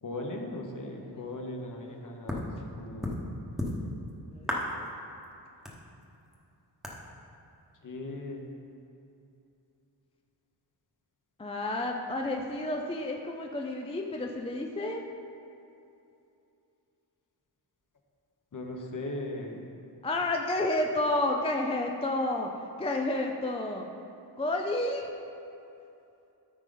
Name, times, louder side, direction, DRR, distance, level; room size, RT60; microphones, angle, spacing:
voice 1, 0.0-3.2 7.8-8.4 18.5-19.6, left 2 dB, 45° left, 2 dB, 1.0 m, -38 dB
sound 1, 2.3-2.5 3.0-3.2 3.6-4.1 4.4-4.9 5.2-5.3 5.6-6.4 6.8-7.0, left 1 dB, ahead, 1.0 m, -33 dB
voice 2, 4.3-4.9 11.4-15.0 20.0-23.9 24.4-25.1, left 2 dB, 15° left, 2 dB, 0.4 m, -30 dB
13.0 x 4.9 x 3.8 m, 2.7 s
wide cardioid pair, 165°, 43 cm